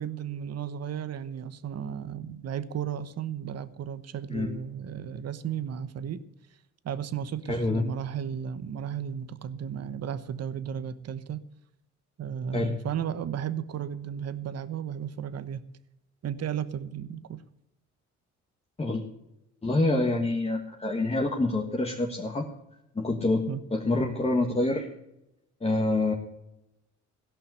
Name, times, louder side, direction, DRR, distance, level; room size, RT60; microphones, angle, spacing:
voice 1, 0.0-6.2 6.8-11.4 12.2-15.6 16.2-17.4 23.5-23.6, right 8 dB, 55° right, 14 dB, 1.0 m, -34 dB
voice 2, 7.5-7.8 12.5-12.8 18.8-19.0 19.6-22.5 22.9-24.9 25.6-26.1, left 2 dB, 20° left, 1 dB, 1.6 m, -26 dB
16.5 x 5.7 x 9.3 m, 0.89 s
cardioid pair, 90°, 30 cm